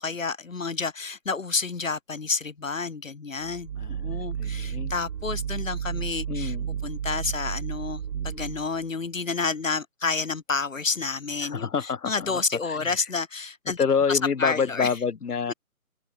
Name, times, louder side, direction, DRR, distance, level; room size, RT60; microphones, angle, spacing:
voice 1, 0.0-3.7 4.0-6.5 6.8-11.7 12.1-13.8 14.1-14.9, left 4 dB, 60° left, 1.2 m, -29 dB
sound 1, 3.4-8.9, right 8 dB, 85° right, 0.6 m, -32 dB
voice 2, 3.8-4.9 6.3-6.7 11.4-13.0 13.8-15.5, left 6 dB, 90° left, 1.0 m, -28 dB
figure-of-eight pair, 170°, 45 cm